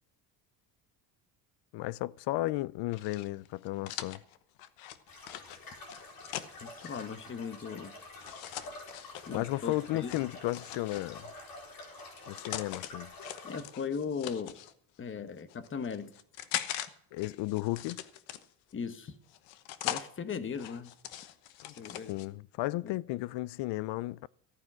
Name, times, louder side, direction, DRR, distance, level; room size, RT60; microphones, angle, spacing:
voice 1, 1.7-4.2 9.3-11.3 12.3-13.1 17.1-18.0 21.6-21.7 22.1-24.3, left 18 dB, 70° left, 0.6 m, -34 dB
sound 1, 2.9-7.0 8.2-9.3 10.1-11.3 12.0-12.9 13.2-14.7 15.4-16.9 17.2-18.7 19.3-20.1 20.5-22.3, left 12 dB, 85° left, 1.2 m, -41 dB
sound 2, 5.1-13.6, left 2 dB, 50° left, 4.2 m, -48 dB
voice 2, 6.6-7.9 9.3-10.3 13.4-14.6 15.0-16.1 18.7-19.1 19.8-20.9 21.8-22.2 22.8-23.2, left 6 dB, 25° left, 1.1 m, -38 dB
14.5 x 9.5 x 6.2 m
cardioid pair, 125°, 45 cm